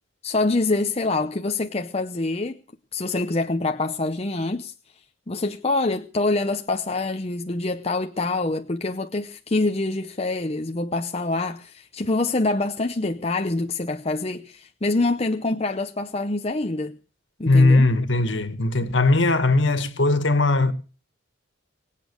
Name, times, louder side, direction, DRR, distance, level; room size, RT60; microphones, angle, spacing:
voice 1, 0.2-2.6 2.9-4.7 5.3-17.0 17.4-17.9, left 2 dB, 30° left, 0.7 m, -25 dB
voice 2, 17.4-20.7, left 2 dB, 65° left, 2.0 m, -19 dB
23.5 x 8.5 x 6.5 m
head